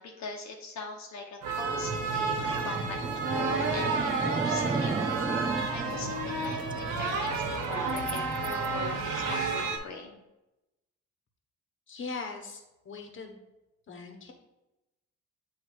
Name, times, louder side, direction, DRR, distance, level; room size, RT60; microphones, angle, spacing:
voice 1, 0.0-3.0 3.3-4.9 5.7-10.2, left 3 dB, 65° left, 0 dB, 0.9 m, -41 dB
sound 1, 1.4-9.8, right 4 dB, 85° right, 1.0 m, -31 dB
sound 2, 1.6-8.7, right 4 dB, 15° right, 0.4 m, -36 dB
voice 2, 11.9-13.4 13.9-14.3, left 4 dB, 40° left, 4 dB, 1.1 m, -40 dB
7.7 x 2.7 x 4.6 m, 0.97 s
cardioid pair, 90°, 30 cm